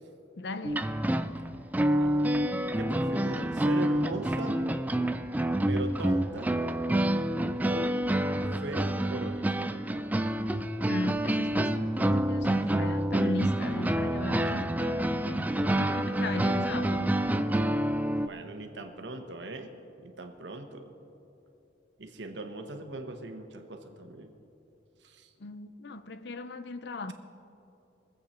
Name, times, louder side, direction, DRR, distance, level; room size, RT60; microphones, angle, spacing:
voice 1, 0.3-0.9 10.9-17.2 25.4-27.1, left 2 dB, 65° left, 0.6 m, -37 dB
sound 1, 0.6-18.3, right 1 dB, 10° right, 0.3 m, -28 dB
voice 2, 1.9-2.2 2.8-4.6 5.7-6.5 7.7-8.0 8.6-9.7 18.2-19.7 20.0-20.9 22.0-24.3 25.0-25.3, right 2 dB, 70° right, 1.2 m, -39 dB
23.0 x 8.1 x 4.3 m
head